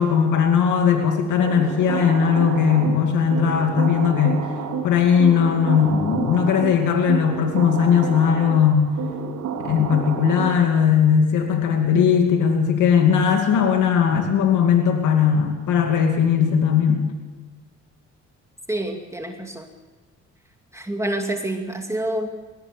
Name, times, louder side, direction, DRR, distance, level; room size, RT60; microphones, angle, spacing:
voice 1, 0.0-4.5 4.8-8.9 9.6-17.1, left 7 dB, 80° left, 3 dB, 2.5 m, -18 dB
sound 1, 1.4-10.9, right 7 dB, 85° right, 3.6 m, -30 dB
voice 2, 18.7-19.7 20.7-22.3, right 1 dB, 10° right, 3 dB, 2.5 m, -27 dB
21.5 x 18.0 x 6.8 m, 1.3 s
cardioid pair, 90°, 30 cm